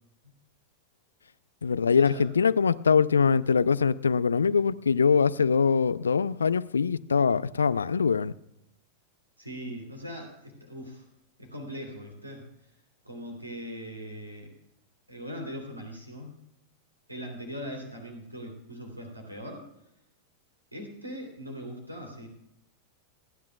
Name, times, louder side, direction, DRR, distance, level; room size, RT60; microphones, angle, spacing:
voice 1, 1.6-8.3, left 6 dB, 70° left, 0.4 m, -23 dB
voice 2, 9.4-11.0 11.4-12.5 13.0-14.5 15.1-16.4 17.1-19.6 20.7-22.3, equal, 85° right, 3.3 m, -40 dB
27.5 x 10.5 x 2.4 m
figure-of-eight pair, 90°, 0 cm